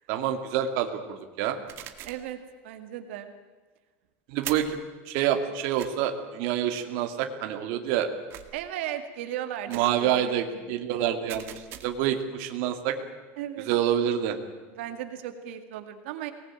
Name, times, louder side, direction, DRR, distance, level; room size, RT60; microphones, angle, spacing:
voice 1, 0.1-1.6 4.3-4.8 5.1-8.1 9.7-11.5 11.8-13.0 13.6-14.4, right 10 dB, 55° right, 6 dB, 2.4 m, -27 dB
sound 1, 1.7-2.3 4.4-4.8 5.8-5.9 8.3-8.7 9.7-10.0 11.3-12.1, right 12 dB, 40° right, 2.0 m, -41 dB
voice 2, 2.0-2.4 2.6-3.3 8.5-10.3 13.4-13.7 14.8-16.3, right 11 dB, 80° right, 8 dB, 2.2 m, -36 dB
24.5 x 19.5 x 9.0 m, 1.4 s
cardioid pair, 170°, 6 cm